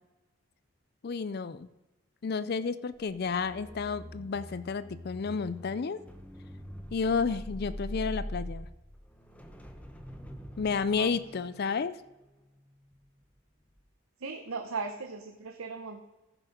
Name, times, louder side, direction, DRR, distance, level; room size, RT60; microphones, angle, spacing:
voice 1, 1.0-1.7 2.2-6.0 6.9-8.7 10.6-12.0, left 5 dB, 45° left, 15 dB, 0.4 m, -31 dB
sound 1, 2.9-13.2 13.6-13.9, equal, 5° left, 0.8 m, -44 dB
voice 2, 14.2-16.0, right 4 dB, 80° right, 4 dB, 0.8 m, -37 dB
14.5 x 6.0 x 5.2 m, 1.0 s
head